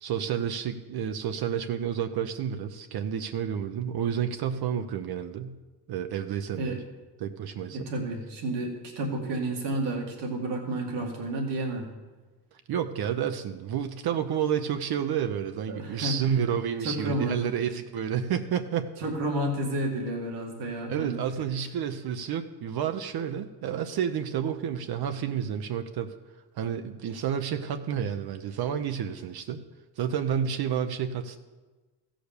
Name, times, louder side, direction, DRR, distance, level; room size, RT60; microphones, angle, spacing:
voice 1, 0.0-5.6 5.9-6.8 7.2-7.9 12.7-18.9 20.9-26.1 26.6-29.6 30.0-31.4, right 8 dB, 65° right, 7 dB, 0.8 m, -30 dB
voice 2, 7.7-11.9 15.7-16.4 16.8-17.4 19.0-21.2, right 1 dB, 90° right, 1 dB, 2.2 m, -31 dB
15.0 x 5.1 x 6.7 m, 1.2 s
cardioid pair, 90°, 41 cm